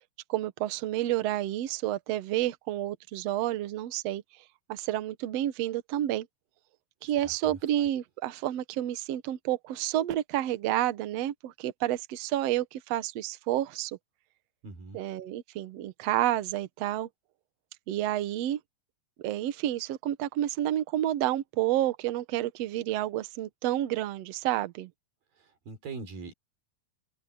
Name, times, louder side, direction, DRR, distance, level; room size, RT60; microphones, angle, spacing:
voice 1, 0.3-4.2 4.7-6.3 7.0-14.0 14.9-17.1 17.9-18.6 19.2-24.9, right 13 dB, 65° right, 1.8 m, -30 dB
voice 2, 7.0-7.9 14.6-15.0 25.3-26.3, right 4 dB, 80° right, 6.9 m, -43 dB
omnidirectional pair, 4.0 m